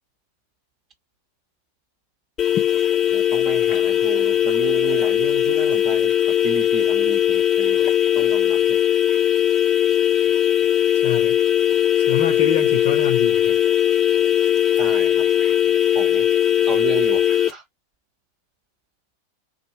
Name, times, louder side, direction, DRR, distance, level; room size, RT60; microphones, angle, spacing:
sound 1, 2.4-17.5, left 11 dB, 25° left, 0.6 m, -19 dB
voice 1, 3.1-7.8 8.1-8.8 14.7-15.3 15.9-16.3 16.7-17.6, right 8 dB, 30° right, 0.8 m, -32 dB
voice 2, 11.0-11.4 12.0-13.6, left 7 dB, 55° left, 0.8 m, -26 dB
2.5 x 2.2 x 3.0 m
figure-of-eight pair, 90°, 0 cm